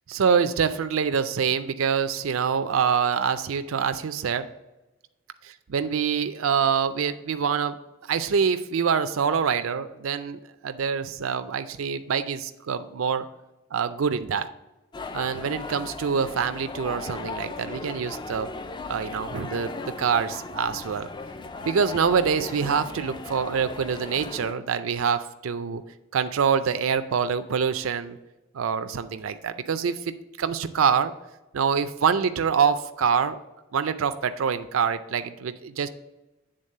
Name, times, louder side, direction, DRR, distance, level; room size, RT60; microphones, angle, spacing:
voice 1, 0.1-4.5 5.7-7.8 8.1-13.3 13.7-14.5 15.1-18.5 18.9-21.1 21.6-25.8 26.1-28.2 28.5-31.1 31.5-33.4 33.7-35.9, right 6 dB, 85° right, 10 dB, 0.5 m, -25 dB
sound 1, 14.9-24.5, left 3 dB, 20° left, 0.3 m, -37 dB
8.8 x 3.9 x 6.5 m, 1.0 s
head